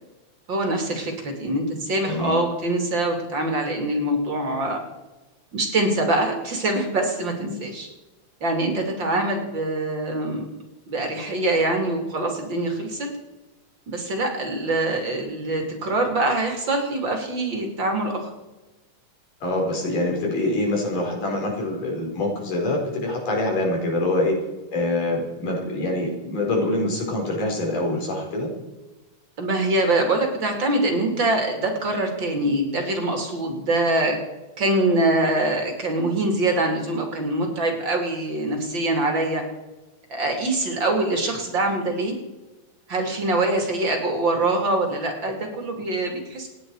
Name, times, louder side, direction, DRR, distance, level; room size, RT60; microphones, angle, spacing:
voice 1, 0.5-4.8 5.5-7.9 8.4-10.4 10.9-13.1 13.9-18.3 29.4-34.2 34.6-39.4 40.1-42.1 42.9-46.5, right 2 dB, 40° right, 2 dB, 3.1 m, -24 dB
voice 2, 2.0-2.4 19.4-24.3 24.7-28.5, left 2 dB, 90° left, -1 dB, 6.3 m, -25 dB
28.0 x 10.0 x 4.8 m, 1.1 s
omnidirectional pair, 3.6 m